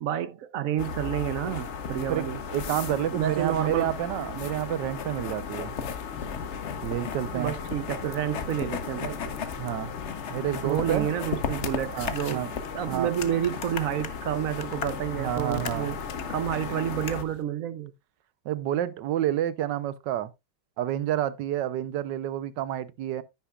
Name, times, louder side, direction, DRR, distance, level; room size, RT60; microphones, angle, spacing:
voice 1, 0.0-2.4 3.1-3.9 7.3-9.4 10.6-12.5 12.7-16.0 16.3-17.9, right 10 dB, 65° right, 0.9 m, -29 dB
sound 1, 0.8-17.2, left 6 dB, 50° left, 1.0 m, -35 dB
voice 2, 2.5-5.7 6.8-7.5 9.6-9.9 10.3-11.1 11.9-12.5 12.9-13.1 15.1-15.9 18.4-20.3 20.8-23.2, right 12 dB, 80° right, 1.4 m, -29 dB
Thunder, 6.1-17.4, left 8 dB, 90° left, 1.5 m, -46 dB
10.0 x 9.4 x 2.3 m
omnidirectional pair, 1.9 m